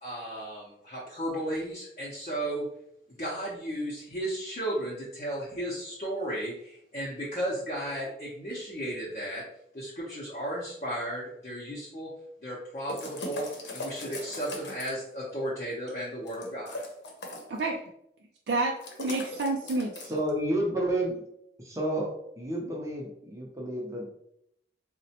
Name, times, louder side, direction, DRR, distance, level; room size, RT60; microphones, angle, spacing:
voice 1, 0.0-2.7 3.2-9.4 9.7-12.1 12.4-13.5 13.7-16.8, right 1 dB, 40° left, -6 dB, 0.6 m, -34 dB
sound 1, 12.9-15.1 16.3-17.6 18.8-20.3, left 2 dB, 90° left, 0.7 m, -39 dB
voice 2, 18.5-20.2, right 2 dB, 80° right, 0 dB, 0.4 m, -29 dB
voice 3, 20.1-21.2 21.6-22.1 22.4-24.1, right 1 dB, 15° right, -1 dB, 0.6 m, -30 dB
4.0 x 2.1 x 2.8 m, 0.76 s
head